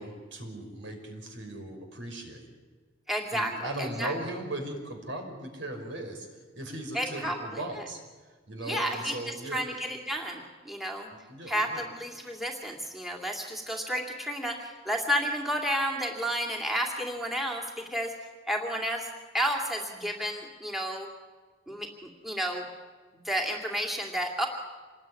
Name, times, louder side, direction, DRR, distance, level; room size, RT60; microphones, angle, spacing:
voice 1, 0.0-2.5 3.3-8.0 8.5-9.6 11.1-11.9, right 1 dB, 65° right, 4 dB, 5.5 m, -38 dB
voice 2, 3.1-4.1 6.9-7.3 8.6-9.2 9.5-11.1 11.5-18.1 18.5-19.1 19.3-21.1 21.7-22.6 23.2-24.5, equal, ahead, 1 dB, 2.5 m, -31 dB
27.0 x 21.0 x 9.8 m, 1.5 s
head